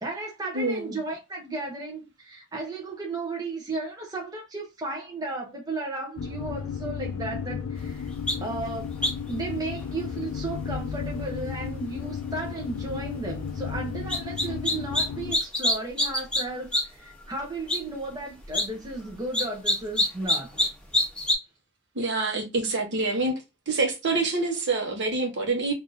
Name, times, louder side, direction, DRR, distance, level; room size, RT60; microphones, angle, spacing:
voice 1, 0.0-8.1 8.4-9.0 9.3-20.5, right 2 dB, 20° right, 0.7 m, -34 dB
voice 2, 0.5-1.0 21.9-23.3 23.7-25.7, right 3 dB, 60° right, 1.0 m, -26 dB
sound 1, 6.2-15.4, left 6 dB, 70° left, 0.3 m, -34 dB
sound 2, 8.3-8.4 9.0-9.3 14.1-15.0 15.3-16.4 16.7-16.8 17.2-17.3 17.7-17.8 18.4-18.6 19.3-20.7 20.9-21.3, left 1 dB, 5° left, 0.9 m, -24 dB
3.4 x 2.5 x 2.5 m
head